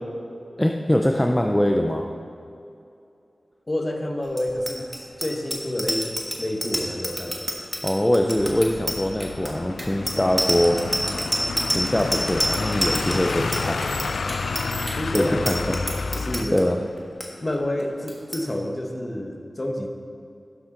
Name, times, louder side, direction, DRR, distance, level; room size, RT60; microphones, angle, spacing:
voice 1, 0.6-2.0 7.8-10.8 11.7-13.8 15.1-15.8 16.5-16.8, left 1 dB, 15° left, 3 dB, 0.5 m, -22 dB
voice 2, 3.7-6.1 6.4-7.4 15.0-16.8 17.4-19.9, left 1 dB, 30° left, 3 dB, 1.0 m, -29 dB
Bicycle bell, 4.3-16.6 17.0-17.3 17.5-17.8 18.1-18.4, right 1 dB, 10° right, 1.4 m, -28 dB
sound 1, 8.4-16.4, left 4 dB, 80° left, 0.3 m, -30 dB
11.5 x 7.2 x 3.8 m, 2.7 s
wide cardioid pair, 75°, 0 cm